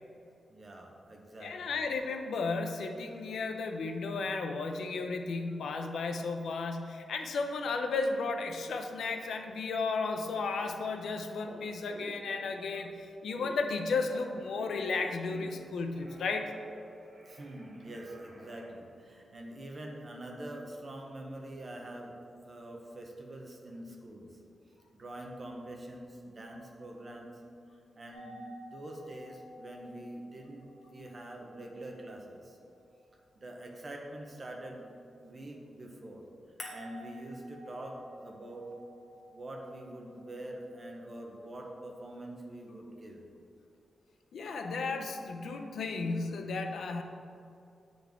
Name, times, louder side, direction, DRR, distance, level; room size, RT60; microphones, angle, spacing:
voice 1, 0.5-1.8 17.3-22.2 22.4-24.4 24.9-27.4 28.0-32.6 33.4-34.9 35.2-36.2 36.7-38.7 39.3-43.2, right 1 dB, 30° right, 1 dB, 0.7 m, -45 dB
voice 2, 1.4-16.5 44.3-47.0, left 4 dB, 80° left, 5 dB, 0.5 m, -34 dB
Telephone, 10.9-11.0 11.4-12.8 13.3-15.6 15.9-18.7, right 1 dB, 70° right, 1.2 m, -50 dB
sound 1, 28.1-33.1 36.6-40.7 44.5-45.7, left 1 dB, 45° left, 1.0 m, -51 dB
8.6 x 3.9 x 3.5 m, 2.5 s
wide cardioid pair, 165°, 0 cm